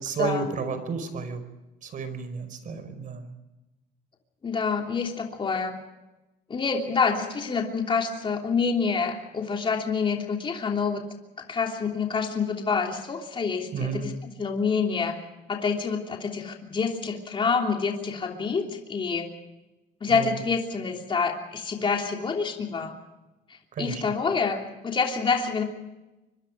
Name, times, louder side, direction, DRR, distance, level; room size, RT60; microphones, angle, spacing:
voice 1, 0.0-1.4 1.8-3.3 13.7-14.1 20.1-20.4 23.7-24.0, right 4 dB, 50° right, 10 dB, 5.1 m, -31 dB
voice 2, 4.4-5.8 6.5-11.0 11.4-14.1 14.4-15.2 15.5-19.3 20.0-23.0 23.5-25.6, left 5 dB, 30° left, 2 dB, 3.1 m, -27 dB
24.5 x 24.0 x 5.0 m, 1.0 s
cardioid pair, 110°, 17 cm